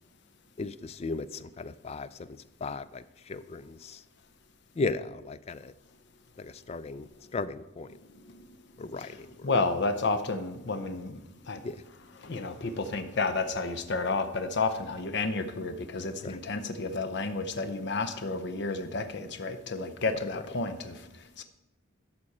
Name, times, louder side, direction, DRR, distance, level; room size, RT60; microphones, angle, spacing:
voice 1, 0.6-4.0 4.8-5.7 6.4-8.0 8.8-9.5 11.6-11.8 16.2-16.4, left 3 dB, 30° left, 0.3 m, -36 dB
voice 2, 9.4-11.2 11.5-11.6 12.2-21.0 21.4-21.5, left 3 dB, 55° left, 0.7 m, -31 dB
11.0 x 6.2 x 4.2 m
head